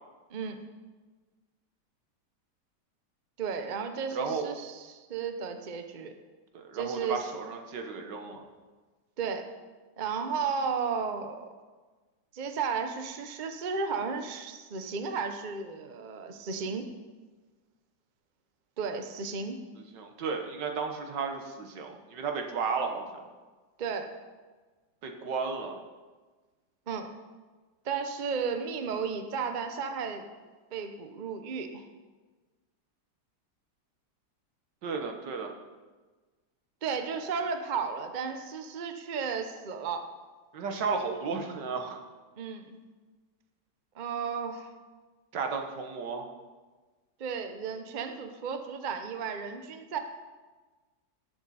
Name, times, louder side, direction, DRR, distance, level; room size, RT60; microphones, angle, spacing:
voice 1, 3.4-6.1 6.7-7.2 9.2-9.5 10.0-11.5 12.3-16.8 18.8-19.6 23.8-24.1 26.9-27.1 27.8-30.3 30.7-31.9 36.8-40.1 42.4-42.8 44.0-44.7 47.2-50.0, right 5 dB, 40° right, 6 dB, 0.7 m, -34 dB
voice 2, 4.2-4.5 6.5-8.5 19.8-23.3 25.0-25.8 34.8-35.5 40.5-42.0 45.3-46.3, right 5 dB, 85° right, 4 dB, 1.9 m, -33 dB
18.5 x 7.2 x 4.2 m, 1.3 s
omnidirectional pair, 1.8 m